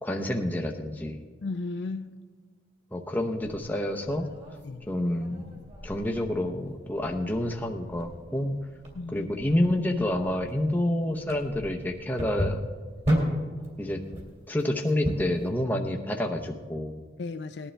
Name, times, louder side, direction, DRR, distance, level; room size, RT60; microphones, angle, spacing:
voice 1, 0.0-1.2 2.9-4.3 4.9-5.6 5.8-8.6 9.1-12.6 13.8-14.0 14.5-17.0, left 1 dB, 10° left, 1 dB, 0.7 m, -28 dB
voice 2, 1.4-2.3 4.6-4.9 8.9-9.3 17.2-17.7, left 3 dB, 60° left, 9 dB, 0.5 m, -35 dB
sound 1, 3.4-15.5, equal, 35° right, 2.6 m, -35 dB
19.0 x 11.5 x 3.4 m, 1.5 s
head